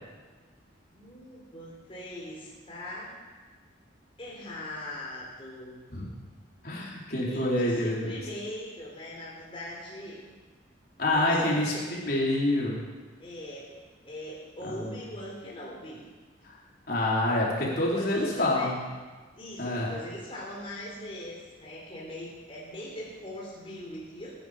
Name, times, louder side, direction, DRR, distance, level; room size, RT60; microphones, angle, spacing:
voice 1, 0.9-3.2 4.2-5.9 7.3-10.2 11.0-11.8 13.2-13.8 14.0-16.0 17.6-18.7 19.3-24.3, left 1 dB, 30° left, -4 dB, 3.4 m, -41 dB
voice 2, 6.6-8.1 11.0-11.7 12.0-12.8 14.6-15.0 16.4-16.6 16.9-18.8 19.6-19.9, left 1 dB, 50° left, -4 dB, 4.0 m, -27 dB
23.5 x 10.5 x 5.2 m, 1.4 s
head